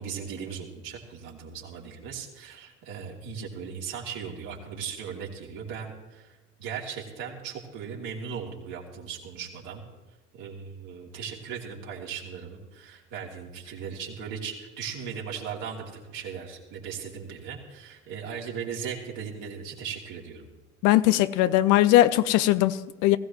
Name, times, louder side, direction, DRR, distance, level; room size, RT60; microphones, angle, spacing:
voice 1, 0.0-9.8 10.3-20.5, right 7 dB, 65° right, 3.2 m, -38 dB
voice 2, 20.8-23.2, left 14 dB, 60° left, 0.7 m, -20 dB
20.0 x 15.5 x 3.2 m
hypercardioid pair, 60°, 34 cm